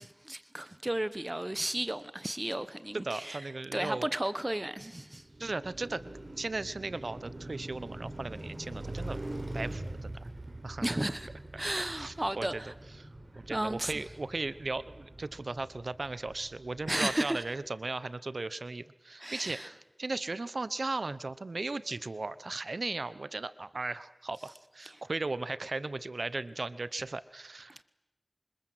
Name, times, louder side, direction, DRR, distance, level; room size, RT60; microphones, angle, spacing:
voice 1, 0.0-3.4 3.7-5.3 10.8-11.3 11.6-12.7 13.5-13.9 16.9-17.4 19.2-19.7, right 1 dB, 35° right, 1.1 m, -33 dB
voice 2, 2.9-4.1 5.4-6.0 6.3-9.2 9.5-10.3 10.6-11.1 11.5-12.6 13.0-13.1 13.3-27.8, right 3 dB, 90° right, 0.9 m, -37 dB
Car passing by, 5.1-17.4, right 1 dB, 65° right, 4.1 m, -43 dB
26.5 x 25.5 x 7.9 m
wide cardioid pair, 40°, 0 cm